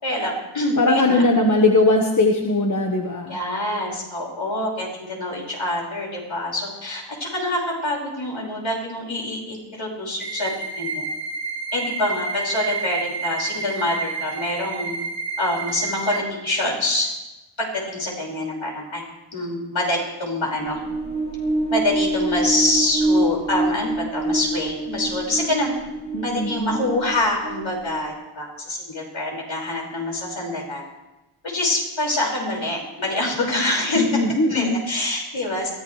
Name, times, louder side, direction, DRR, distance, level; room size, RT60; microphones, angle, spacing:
voice 1, 0.0-1.2 3.3-11.1 11.7-15.0 15.4-17.1 17.6-19.1 19.3-20.8 21.7-25.8 26.2-30.8 31.4-34.0 34.5-35.7, left 1 dB, 65° left, -3 dB, 5.3 m, -25 dB
voice 2, 0.8-3.4 26.1-26.8 33.9-34.8, left 2 dB, 35° left, 2 dB, 1.3 m, -19 dB
sound 1, 10.2-16.2, right 4 dB, 45° right, 2.5 m, -30 dB
sound 2, 20.5-28.2, right 2 dB, 10° left, 1.7 m, -26 dB
23.0 x 15.5 x 3.2 m, 1.0 s
wide cardioid pair, 110°, 49 cm